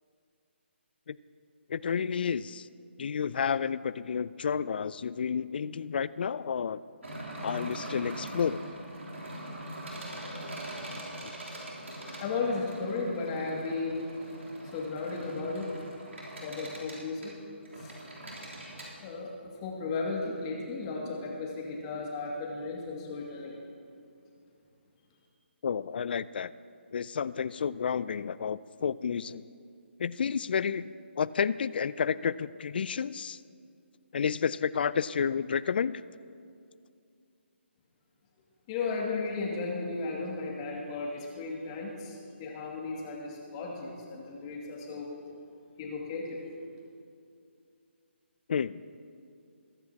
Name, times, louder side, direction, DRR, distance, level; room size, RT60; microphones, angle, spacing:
voice 1, 1.7-2.7 3.0-6.8 7.4-8.6 25.6-26.5 26.9-29.5 30.0-33.4 34.1-36.0 48.5-48.8, left 7 dB, 50° left, 18 dB, 0.3 m, -31 dB
sound 1, 7.0-18.9, right 1 dB, 85° right, 3.3 m, -42 dB
voice 2, 12.2-14.0 14.7-15.7 16.4-17.4 17.8-17.9 19.0-23.6 38.7-45.1 45.8-46.4, left 3 dB, 25° left, -2 dB, 2.2 m, -35 dB
21.5 x 10.5 x 2.9 m, 2.4 s
hypercardioid pair, 155°, 7 cm